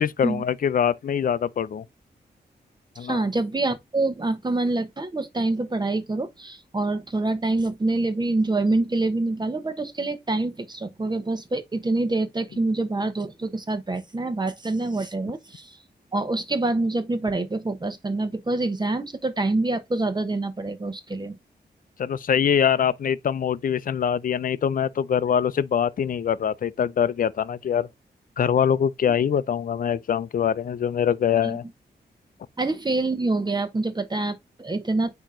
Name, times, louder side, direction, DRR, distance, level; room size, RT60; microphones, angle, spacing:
voice 1, 0.0-1.8 3.0-3.2 22.0-27.9 28.4-31.6, left 8 dB, 55° left, 0.5 m, -23 dB
voice 2, 3.0-15.7 16.1-21.4 31.4-31.6 32.6-35.1, right 2 dB, 25° right, 1.1 m, -26 dB
9.0 x 3.0 x 3.7 m
wide cardioid pair, 90°, 17 cm